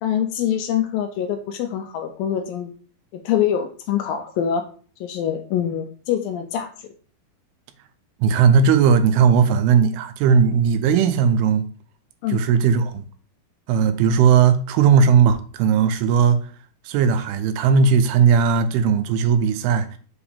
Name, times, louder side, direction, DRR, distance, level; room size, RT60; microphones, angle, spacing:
voice 1, 0.0-2.7 3.1-4.6 5.0-6.7 12.2-12.4, left 9 dB, 80° left, 2.2 m, -24 dB
voice 2, 8.2-11.6 12.3-13.0 13.7-16.4 16.9-20.0, right 6 dB, 85° right, 2.6 m, -17 dB
6.2 x 4.9 x 3.4 m
omnidirectional pair, 4.4 m